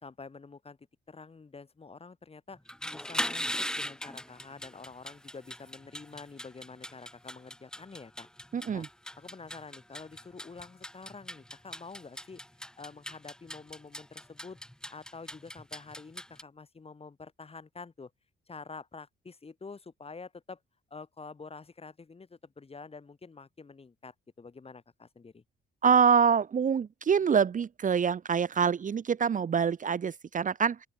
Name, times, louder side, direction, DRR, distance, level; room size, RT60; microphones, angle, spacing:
voice 1, 0.0-0.8 1.1-2.6 2.9-8.3 8.7-8.9 9.2-12.4 12.8-14.6 14.9-18.1 18.5-20.6 20.9-25.4, left 4 dB, 30° left, 5.1 m, -47 dB
sound 1, 2.6-16.4, left 1 dB, 5° left, 1.4 m, -40 dB
voice 2, 8.5-8.8 25.8-30.9, right 6 dB, 40° right, 1.0 m, -25 dB
open air
cardioid pair, 90°, 20 cm